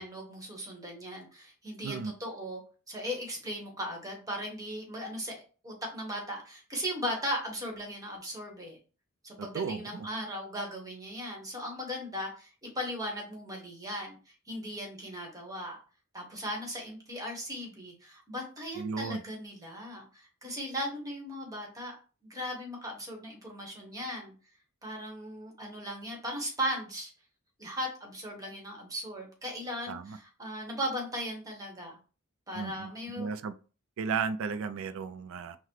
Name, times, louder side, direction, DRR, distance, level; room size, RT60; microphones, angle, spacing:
voice 1, 0.0-2.6 2.9-8.8 9.2-14.2 14.5-15.8 16.1-21.9 22.3-24.3 24.8-27.1 27.6-32.0 32.5-33.3, equal, 15° right, 0 dB, 1.2 m, -37 dB
voice 2, 9.4-10.1 18.8-19.2 29.9-30.2 32.5-33.5 34.0-35.6, right 5 dB, 65° right, 11 dB, 0.3 m, -34 dB
5.7 x 2.1 x 3.1 m, 0.36 s
head